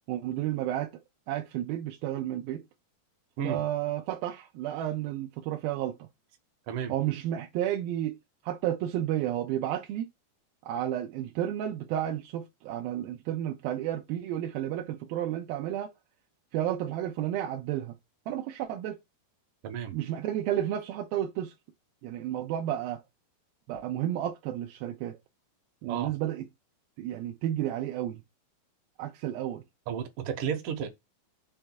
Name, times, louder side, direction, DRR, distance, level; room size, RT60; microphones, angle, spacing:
voice 1, 0.1-1.0 1.3-2.6 3.4-6.1 6.9-8.2 8.4-10.1 10.6-15.9 16.5-18.0 18.3-19.0 19.9-21.5 22.0-23.0 23.7-25.2 25.8-26.5 27.0-28.2 29.0-29.6, right 12 dB, 80° right, 2.3 m, -32 dB
voice 2, 19.6-19.9 25.9-26.1 29.9-30.9, right 8 dB, 65° right, 2.5 m, -32 dB
6.3 x 3.4 x 5.9 m
omnidirectional pair, 4.5 m